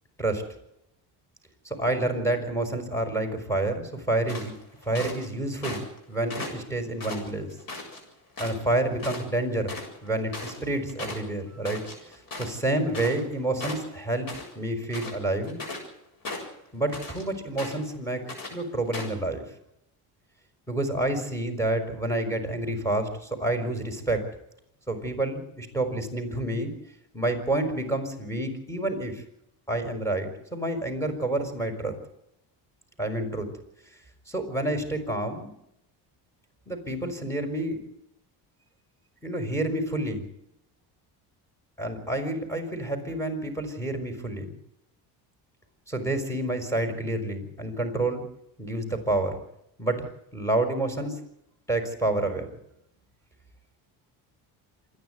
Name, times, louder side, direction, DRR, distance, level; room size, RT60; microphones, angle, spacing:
voice 1, 1.6-4.5 4.8-5.8 6.1-7.5 8.4-9.7 10.0-11.9 12.4-15.6 16.7-18.2 18.5-19.4 20.7-24.3 24.9-26.7 27.1-29.2 29.7-31.9 33.0-33.5 34.3-35.5 36.7-37.8 39.2-40.3 41.8-44.5 45.9-48.2 48.6-49.4 49.8-50.1 50.3-51.2 51.7-52.5, right 2 dB, 5° left, 5 dB, 5.6 m, -28 dB
sound 1, 4.3-5.3 5.6-6.0 6.3-8.0 8.4-8.7 9.0-9.2 9.5-13.3 13.6-14.5 14.8-15.9 16.2-17.2 17.6-18.0 18.3-18.5 18.9-19.2, left 3 dB, 55° left, 7.6 m, -37 dB
27.0 x 10.5 x 9.5 m, 0.80 s
cardioid pair, 110°, 43 cm